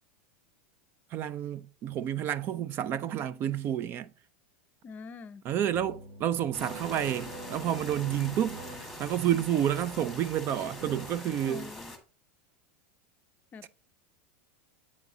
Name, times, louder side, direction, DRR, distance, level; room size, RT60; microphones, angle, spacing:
voice 1, 1.1-4.1 5.5-11.7 13.6-13.7, right 10 dB, 35° right, 0.4 m, -30 dB
voice 2, 4.8-5.4 11.4-11.9 13.5-13.7, left 4 dB, 25° left, 0.5 m, -44 dB
sound 1, 5.7-9.7 10.8-11.1, right 3 dB, 60° right, 1.9 m, -44 dB
sound 2, 6.5-12.0, left 2 dB, ahead, 1.7 m, -44 dB
8.4 x 6.0 x 2.7 m
supercardioid pair, 130°, 7 cm